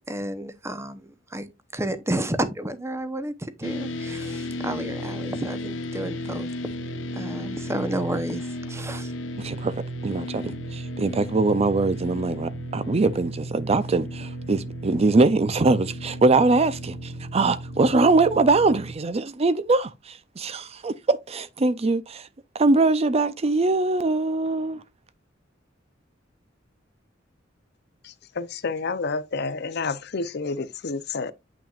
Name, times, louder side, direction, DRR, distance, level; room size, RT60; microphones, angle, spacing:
voice 1, 0.1-6.5 7.1-9.1, right 1 dB, 15° right, 0.8 m, -31 dB
sound 1, 3.6-18.9, equal, 85° left, 1.1 m, -34 dB
voice 2, 9.4-9.7 10.0-22.3 22.5-24.8, right 3 dB, 35° right, 0.5 m, -22 dB
voice 3, 28.0-31.3, left 4 dB, 60° left, 0.7 m, -29 dB
8.7 x 5.9 x 2.4 m
head